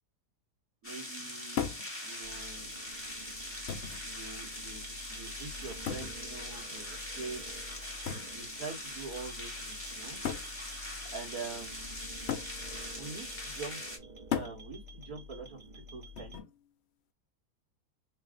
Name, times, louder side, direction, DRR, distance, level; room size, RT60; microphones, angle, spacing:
sound 1, 0.8-14.0, left 1 dB, 10° left, 1.0 m, -42 dB
voice 1, 0.8-1.6 2.0-2.7 4.0-7.4 8.1-10.2 11.1-11.9 13.0-13.9 14.3-15.6 15.9-16.4, right 4 dB, 60° right, 2.1 m, -44 dB
sound 2, 1.6-1.9 2.9-3.0 3.7-4.0 5.9-6.2 8.1-8.3 9.4-9.5 10.2-10.5 12.3-12.6 14.3-14.6 16.2-16.5, left 8 dB, 60° left, 0.7 m, -35 dB
sound 3, 2.2-16.4, left 1 dB, 35° right, 0.9 m, -49 dB
4.0 x 2.3 x 3.7 m
omnidirectional pair, 1.8 m